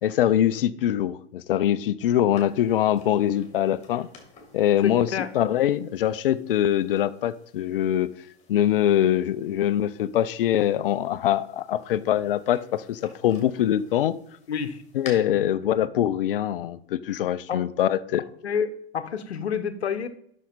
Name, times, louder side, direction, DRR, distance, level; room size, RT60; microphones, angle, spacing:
voice 1, 0.0-4.1 4.5-8.1 8.5-14.2 14.9-18.2, left 11 dB, 55° left, 16 dB, 0.6 m, -23 dB
sound 1, 2.3-15.1, left 6 dB, 20° left, 2.8 m, -52 dB
voice 2, 4.8-5.3 14.5-14.8 17.5-17.7 18.4-18.7 18.9-20.1, left 7 dB, 70° left, 12 dB, 1.0 m, -28 dB
11.5 x 6.3 x 4.1 m, 0.67 s
figure-of-eight pair, 95°, 33 cm